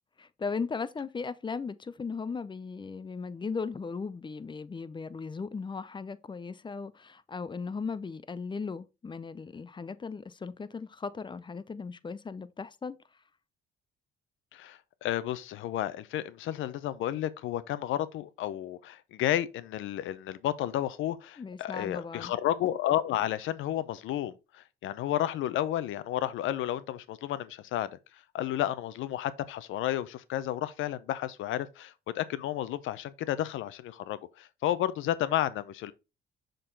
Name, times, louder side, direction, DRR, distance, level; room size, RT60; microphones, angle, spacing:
voice 1, 0.2-13.0 21.4-22.3, left 5 dB, 25° left, 0.5 m, -37 dB
voice 2, 14.5-27.9 28.3-35.9, left 12 dB, 85° left, 0.6 m, -32 dB
6.5 x 3.9 x 3.9 m
cardioid pair, 90°, 20 cm